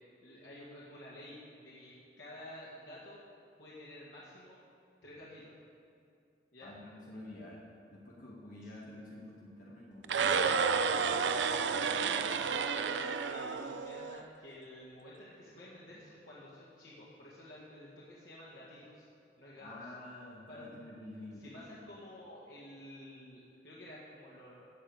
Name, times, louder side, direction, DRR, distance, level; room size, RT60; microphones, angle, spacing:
voice 1, 0.2-3.2 3.6-4.6 5.0-5.5 6.5-6.7 10.9-12.0 12.4-19.1 19.4-19.7 20.5-20.7 21.4-24.7, left 1 dB, 85° left, -7 dB, 2.0 m, -51 dB
voice 2, 6.6-7.6 7.9-10.7 19.6-21.7, left 1 dB, 45° left, -5 dB, 1.8 m, -49 dB
sound 1, 10.0-14.2, right 5 dB, 75° right, 0.5 m, -31 dB
14.5 x 5.0 x 8.7 m, 2.5 s
head